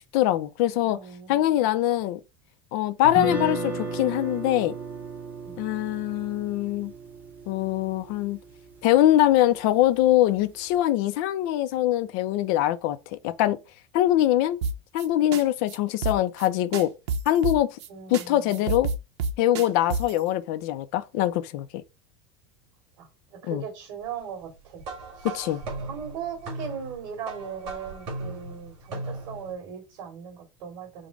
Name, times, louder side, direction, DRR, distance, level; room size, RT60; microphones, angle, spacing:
voice 1, 0.1-1.0 1.3-2.2 2.7-4.7 5.6-6.9 7.5-8.4 8.8-13.6 13.9-14.6 14.9-16.9 17.3-17.8 18.1-18.9 19.4-21.8 23.5-23.6 25.2-25.6, left 13 dB, 45° left, 0.4 m, -23 dB
voice 2, 0.8-1.7 5.4-5.6 17.9-18.6 23.0-24.8 25.1-25.6 25.8-31.1, right 7 dB, 50° right, 2.7 m, -39 dB
Guitar, 3.0-9.2, right 2 dB, 10° right, 1.0 m, -35 dB
sound 1, 14.6-15.1 15.3-15.4 15.7-15.8 16.0-16.5 16.7-17.9 18.1-18.2 18.5-20.2, right 4 dB, 80° right, 0.8 m, -28 dB
sound 2, 24.8-29.5, right 2 dB, 35° right, 1.9 m, -37 dB
5.0 x 2.1 x 4.8 m
supercardioid pair, 180°, 14 cm